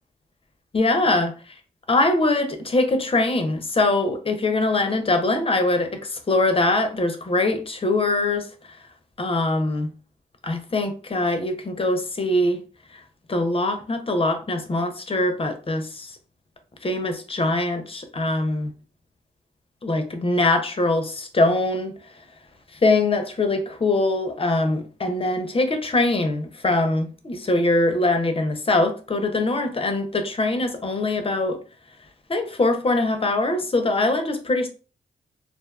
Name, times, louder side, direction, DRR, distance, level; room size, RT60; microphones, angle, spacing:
voice 1, 0.7-1.5 1.9-8.5 9.2-9.9 10.4-12.6 13.3-16.1 16.8-18.7 19.8-22.0 22.8-31.6 32.3-34.7, left 2 dB, 30° left, 0.5 m, -22 dB
2.4 x 2.3 x 2.3 m
cardioid pair, 65°, 18 cm